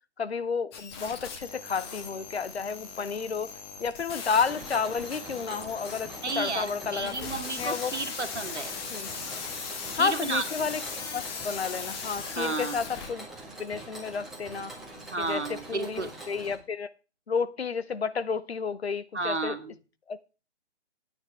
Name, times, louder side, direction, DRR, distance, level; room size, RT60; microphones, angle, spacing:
voice 1, 0.2-3.5 3.8-6.1 6.4-7.2 7.6-7.9 8.9-9.1 10.0-10.8 11.1-13.3 13.6-14.7 15.2-16.9 17.3-19.6 20.1-20.3, left 5 dB, 65° left, 0.7 m, -31 dB
sound 1, 0.7-13.1, left 5 dB, 20° left, 1.5 m, -39 dB
Mechanisms, 4.3-16.5, right 2 dB, ahead, 1.7 m, -44 dB
voice 2, 6.2-8.7 10.0-10.7 12.4-12.9 15.1-16.1 19.1-19.7, right 3 dB, 80° right, 1.9 m, -32 dB
14.0 x 9.4 x 3.4 m
figure-of-eight pair, 140°, 34 cm